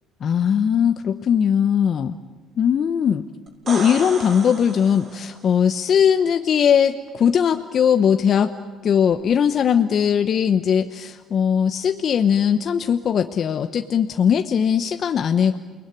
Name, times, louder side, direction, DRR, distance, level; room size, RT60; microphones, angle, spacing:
voice 1, 0.2-2.2 2.6-3.2 3.7-8.5 8.8-15.6, left 8 dB, 55° left, 7 dB, 1.0 m, -19 dB
sound 1, 3.5-5.4 9.1-9.2, right 2 dB, 50° right, 7.3 m, -33 dB
29.0 x 20.5 x 9.4 m, 1.5 s
supercardioid pair, 75°, 0 cm